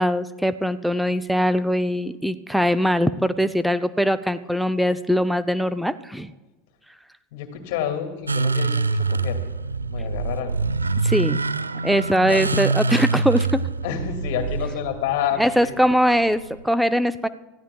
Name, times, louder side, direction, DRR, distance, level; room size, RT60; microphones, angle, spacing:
voice 1, 0.0-6.3 11.0-11.4 11.8-13.7 15.4-17.3, equal, ahead, 12 dB, 0.7 m, -21 dB
voice 2, 7.3-9.4 9.9-10.5 12.2-12.4 13.8-15.7, left 9 dB, 65° left, 6 dB, 2.3 m, -28 dB
sound 1, 8.3-16.6, right 3 dB, 90° right, 0.4 m, -25 dB
28.0 x 15.0 x 2.4 m, 1.1 s
figure-of-eight pair, 80°, 0 cm